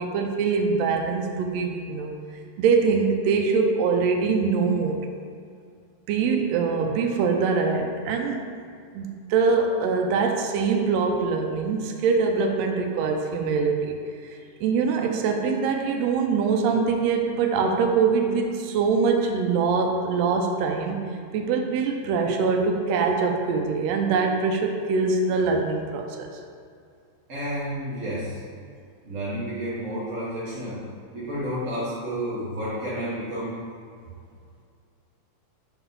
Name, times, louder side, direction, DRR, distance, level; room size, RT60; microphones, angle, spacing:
voice 1, 0.0-2.1 2.6-5.1 6.1-8.5 8.9-14.0 14.6-26.3, right 5 dB, 80° right, 2 dB, 1.7 m, -23 dB
voice 2, 27.3-28.4 29.0-30.8 31.1-33.5, equal, 40° right, -11 dB, 1.2 m, -30 dB
5.5 x 4.0 x 5.4 m, 2.3 s
omnidirectional pair, 3.3 m